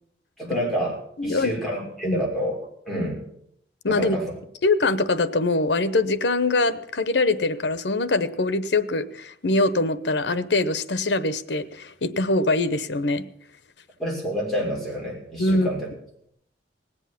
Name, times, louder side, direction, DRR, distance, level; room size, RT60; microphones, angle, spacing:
voice 1, 0.4-2.6 2.9-3.2 3.9-4.3 14.0-15.9, equal, ahead, -4 dB, 5.9 m, -28 dB
voice 2, 1.2-1.5 2.0-2.2 3.8-4.2 4.6-13.2 15.4-15.7, left 2 dB, 80° left, 14 dB, 0.9 m, -23 dB
19.5 x 8.2 x 7.2 m, 0.70 s
head